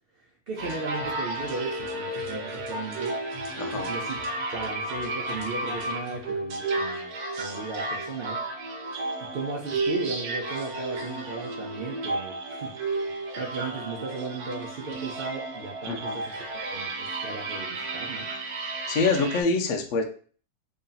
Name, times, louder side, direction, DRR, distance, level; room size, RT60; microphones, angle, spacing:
voice 1, 0.2-3.2 3.9-8.5 9.2-13.0 13.4-18.3, right 4 dB, 90° right, -2 dB, 0.5 m, -36 dB
sound 1, 0.6-19.4, right 2 dB, 70° right, 1.2 m, -33 dB
voice 2, 3.6-3.9 15.9-16.2 18.9-20.0, left 4 dB, 65° left, 5 dB, 0.7 m, -25 dB
3.1 x 2.7 x 3.8 m, 0.42 s
omnidirectional pair, 1.8 m